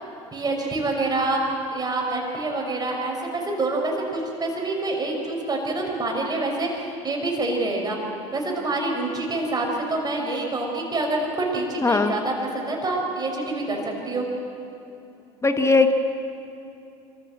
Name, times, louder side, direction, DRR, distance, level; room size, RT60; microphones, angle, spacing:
voice 1, 0.3-1.4 1.7-8.0 8.3-13.8 14.0-14.3, right 2 dB, 25° right, 0 dB, 5.7 m, -26 dB
voice 2, 11.8-12.1 15.4-15.9, left 3 dB, 20° left, 6 dB, 1.7 m, -18 dB
24.5 x 14.0 x 7.7 m, 2.7 s
hypercardioid pair, 70°, 15 cm